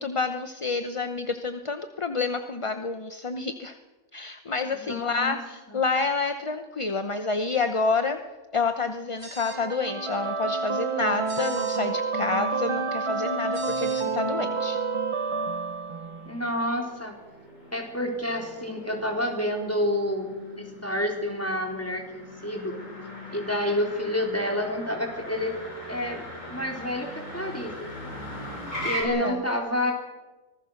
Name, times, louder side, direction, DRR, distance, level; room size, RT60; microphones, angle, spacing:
voice 1, 0.0-3.8 4.1-8.2 8.5-14.8 29.0-29.4, left 4 dB, 30° left, 8 dB, 0.8 m, -28 dB
voice 2, 4.7-5.4 5.7-5.8 16.3-17.2 17.7-20.3 20.6-22.8 23.3-25.6 25.9-26.2 26.5-28.1 28.8-29.9, left 1 dB, 10° left, 1 dB, 4.1 m, -29 dB
sound 1, 9.2-9.6 11.3-11.8 13.5-14.1, right 2 dB, 60° right, 4.6 m, -41 dB
sound 2, 9.5-16.5, right 4 dB, 35° right, 0.6 m, -29 dB
Motor vehicle (road), 15.9-29.0, left 1 dB, 80° left, 6.9 m, -40 dB
25.0 x 19.0 x 6.5 m, 1.2 s
omnidirectional pair, 1.3 m